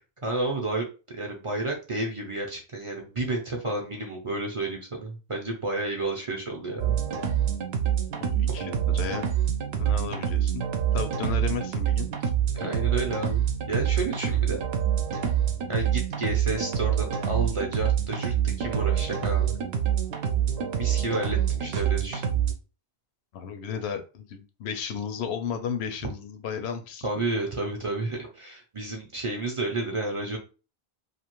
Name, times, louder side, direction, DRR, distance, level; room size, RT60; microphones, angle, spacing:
voice 1, 0.2-7.0 12.5-14.6 15.7-19.6 20.8-22.2 27.0-30.4, right 2 dB, 40° right, 0 dB, 0.5 m, -31 dB
sound 1, 6.8-22.5, right 9 dB, 75° right, 0.8 m, -26 dB
voice 2, 8.2-9.3 9.8-10.6 10.9-12.1 12.6-12.7 23.3-27.1, left 6 dB, 85° left, 7 dB, 0.8 m, -33 dB
2.5 x 2.5 x 2.9 m, 0.34 s
omnidirectional pair, 1.1 m